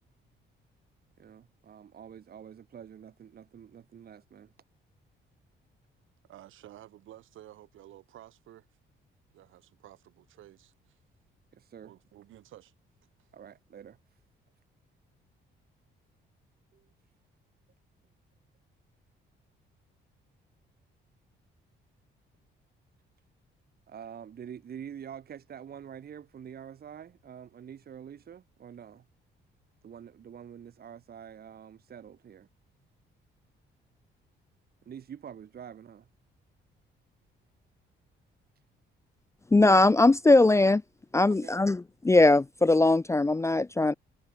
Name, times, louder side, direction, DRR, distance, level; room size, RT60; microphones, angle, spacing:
voice 1, 1.2-4.5 11.5-11.9 13.3-14.0 16.7-16.8 23.9-29.0 29.8-32.5 34.8-36.1 41.3-41.6, right 8 dB, 50° right, 1.4 m, -46 dB
voice 2, 6.2-8.7 9.3-11.0 11.8-12.7 13.2-13.3, right 13 dB, 80° right, 4.5 m, -52 dB
voice 3, 39.5-40.8 41.1-43.9, left 2 dB, 15° left, 0.5 m, -21 dB
cardioid pair, 90°, 20 cm